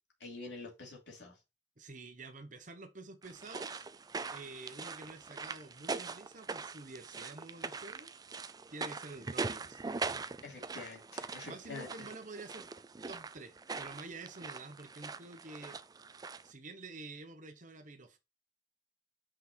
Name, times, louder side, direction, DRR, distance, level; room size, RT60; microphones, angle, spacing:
voice 1, 0.2-1.4 3.7-3.8 10.4-11.9, left 3 dB, 70° left, 2.9 m, -46 dB
voice 2, 1.8-3.7 4.3-8.1 8.7-9.8 11.5-12.7 13.1-15.8 16.4-18.2, right 3 dB, 45° right, 1.0 m, -49 dB
sound 1, 3.2-16.5, right 4 dB, 20° right, 0.4 m, -42 dB
6.0 x 5.0 x 4.4 m
head